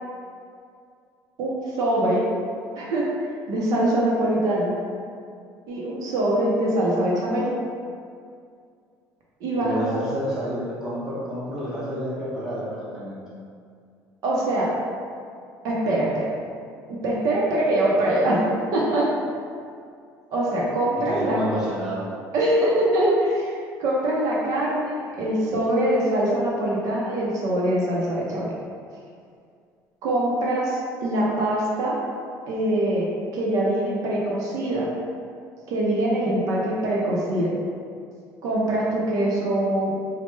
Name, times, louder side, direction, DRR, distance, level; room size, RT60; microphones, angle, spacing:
voice 1, 1.4-2.2 2.8-3.1 3.5-4.8 5.7-7.5 9.4-10.1 14.2-14.7 15.6-16.3 16.9-19.1 20.3-21.4 22.3-23.5 23.8-28.5 30.0-32.0 32.5-33.1 33.3-34.9 35.7-37.5 38.4-39.9, right 1 dB, 60° right, -4 dB, 0.5 m, -23 dB
voice 2, 9.6-13.2 21.1-22.1, equal, 5° right, -9 dB, 0.7 m, -30 dB
3.1 x 2.0 x 3.1 m, 2.3 s
cardioid pair, 165°, 7 cm